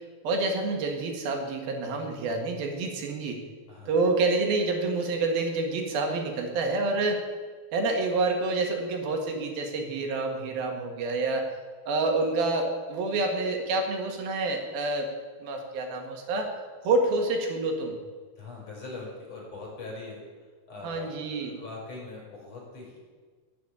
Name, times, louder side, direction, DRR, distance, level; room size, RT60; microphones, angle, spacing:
voice 1, 0.0-3.4 3.9-7.3 7.7-11.5 11.9-15.1 15.4-16.5 16.8-18.0 20.8-21.6, right 3 dB, 80° right, 3 dB, 3.7 m, -28 dB
voice 2, 3.7-4.1 18.4-20.2 20.7-23.0, left 3 dB, 45° left, -2 dB, 6.1 m, -42 dB
16.0 x 8.4 x 9.7 m, 1.5 s
omnidirectional pair, 4.2 m